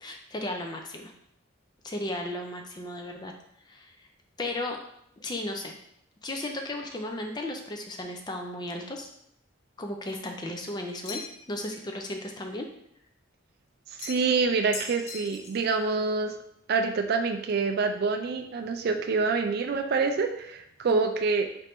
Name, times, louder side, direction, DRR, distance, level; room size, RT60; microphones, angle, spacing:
voice 1, 0.0-1.1 1.8-3.3 3.7-4.1 4.4-4.8 5.2-5.7 6.2-9.1 9.8-11.2 11.5-12.7 20.9-21.0, left 1 dB, 20° left, 3 dB, 0.4 m, -35 dB
sound 1, 11.0-11.5 14.0-14.4 14.7-15.7, left 4 dB, 80° left, 0.6 m, -39 dB
voice 2, 14.0-16.3 16.7-21.5, right 4 dB, 50° right, 6 dB, 0.3 m, -26 dB
4.2 x 2.5 x 3.4 m, 0.73 s
head